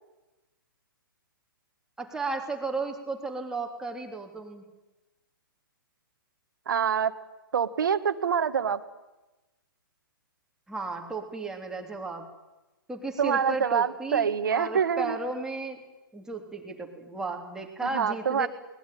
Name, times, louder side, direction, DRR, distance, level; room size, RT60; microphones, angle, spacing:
voice 1, 2.0-4.6 10.7-12.3 12.9-15.8 16.1-18.5, right 3 dB, 5° right, 2 dB, 3.4 m, -34 dB
voice 2, 6.7-7.1 7.5-8.8 13.2-15.2 17.8-18.5, right 7 dB, 60° right, 10 dB, 1.6 m, -26 dB
22.0 x 20.5 x 9.3 m, 1.0 s
figure-of-eight pair, 120°, 12 cm